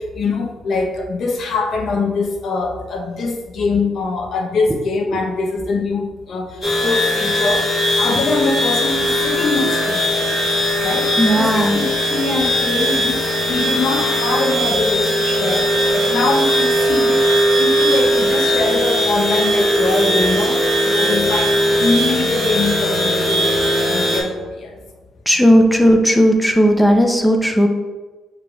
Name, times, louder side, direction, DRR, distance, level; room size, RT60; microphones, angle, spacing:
voice 1, 0.0-6.5 6.8-7.7 8.0-10.0 10.8-11.1 11.4-17.2 17.6-24.7, left 3 dB, 60° left, 1 dB, 0.8 m, -23 dB
sound 1, 6.6-24.2, equal, 40° left, 1.5 m, -18 dB
voice 2, 11.2-11.8 25.3-27.7, equal, 5° left, 3 dB, 0.6 m, -14 dB
6.6 x 3.3 x 2.3 m, 1.2 s
cardioid pair, 90°, 0 cm